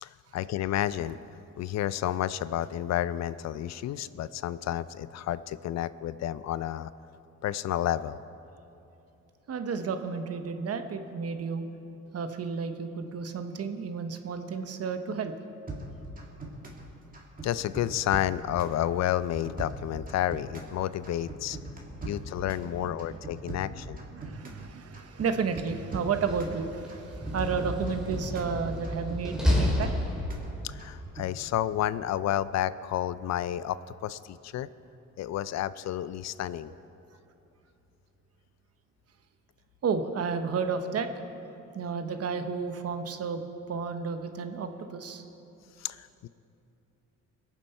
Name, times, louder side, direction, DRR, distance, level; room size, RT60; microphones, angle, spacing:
voice 1, 0.0-1.2 1.6-6.9 7.4-8.2 17.4-21.6 22.0-24.0 30.6-33.8 34.0-34.7 35.2-36.7 45.8-46.3, left 12 dB, 60° left, 16 dB, 0.4 m, -30 dB
voice 2, 9.5-11.6 12.1-15.3 22.0-23.2 24.1-29.9 39.8-41.1 41.7-45.2, right 5 dB, 55° right, 8 dB, 1.0 m, -32 dB
sound 1, 15.7-16.9 17.1-18.8 19.1-20.8 21.0-22.7 23.0-24.7 24.9-26.6 26.9-28.5 28.8-30.5 30.8-31.3, right 2 dB, 30° right, 2.3 m, -40 dB
Slam, 26.0-30.7, left 1 dB, ahead, 2.6 m, -31 dB
21.5 x 7.4 x 4.4 m, 2.8 s
cardioid pair, 90°, 30 cm